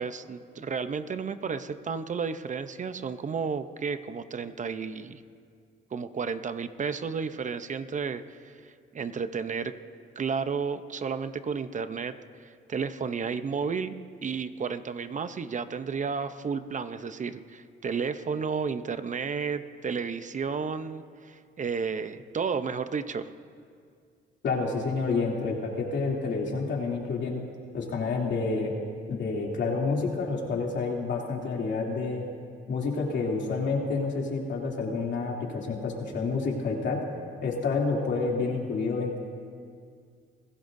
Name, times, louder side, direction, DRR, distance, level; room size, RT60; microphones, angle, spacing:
voice 1, 0.0-5.2 5.9-9.8 10.2-14.0 14.2-23.3, right 5 dB, 40° right, 11 dB, 0.7 m, -32 dB
voice 2, 24.4-27.4 27.7-28.7 29.1-32.3 32.7-37.0 37.4-39.2, left 4 dB, 65° left, -2 dB, 2.9 m, -29 dB
26.5 x 16.5 x 2.7 m, 2.2 s
cardioid pair, 90°, 20 cm